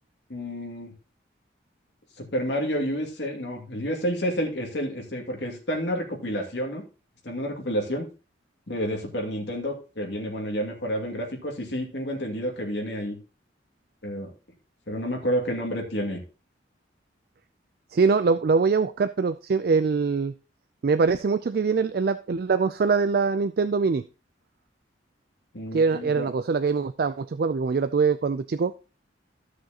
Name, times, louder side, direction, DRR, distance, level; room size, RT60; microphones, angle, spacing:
voice 1, 0.3-0.9 2.2-6.9 7.2-8.1 8.7-13.2 14.0-14.3 14.9-16.2 25.5-26.3, equal, 65° left, 1 dB, 2.4 m, -30 dB
voice 2, 17.9-20.3 20.8-24.0 25.7-28.7, right 4 dB, 55° right, 11 dB, 0.4 m, -23 dB
13.5 x 6.4 x 2.9 m, 0.32 s
head